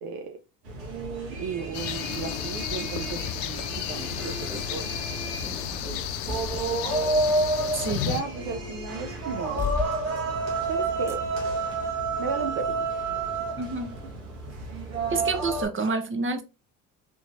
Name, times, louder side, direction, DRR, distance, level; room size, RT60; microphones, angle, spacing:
voice 1, 0.0-0.4 1.3-4.9 5.8-6.0 6.3-6.5 7.9-9.6 10.7-11.2 12.2-12.9, right 6 dB, 65° right, 0.7 m, -35 dB
sound 1, 0.6-15.6, right 2 dB, 85° right, 1.5 m, -30 dB
sound 2, 1.7-8.2, left 10 dB, 70° left, 0.6 m, -33 dB
sound 3, 4.0-5.1 5.3-8.1 8.4-8.5 9.6-10.0 11.1-11.2, left 3 dB, 5° right, 1.6 m, -37 dB
voice 2, 7.8-8.1 13.6-13.9 15.1-16.4, right 3 dB, 30° right, 0.9 m, -28 dB
3.4 x 3.1 x 2.6 m
supercardioid pair, 70°, 42 cm